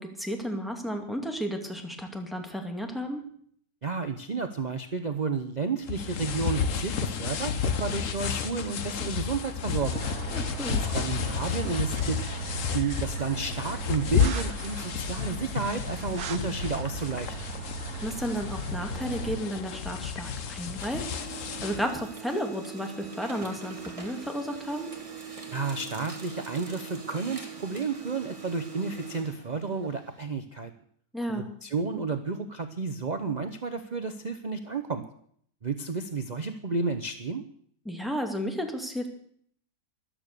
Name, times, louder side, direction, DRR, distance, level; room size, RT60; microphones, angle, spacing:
voice 1, 0.0-3.3 10.3-10.8 18.0-21.1 21.5-24.9 31.1-31.5 37.8-39.1, equal, ahead, 3 dB, 2.1 m, -33 dB
voice 2, 3.8-10.1 10.7-12.2 12.7-17.4 25.5-30.7 31.3-35.0 35.6-37.4, right 4 dB, 35° right, 7 dB, 0.7 m, -31 dB
sound 1, 5.9-21.8, left 7 dB, 60° left, 1.3 m, -31 dB
sound 2, 9.8-19.4, right 7 dB, 85° right, 1.5 m, -38 dB
Printer, 19.1-20.4 20.7-30.2, right 6 dB, 20° right, 1.9 m, -42 dB
13.5 x 12.0 x 6.7 m, 0.62 s
omnidirectional pair, 1.6 m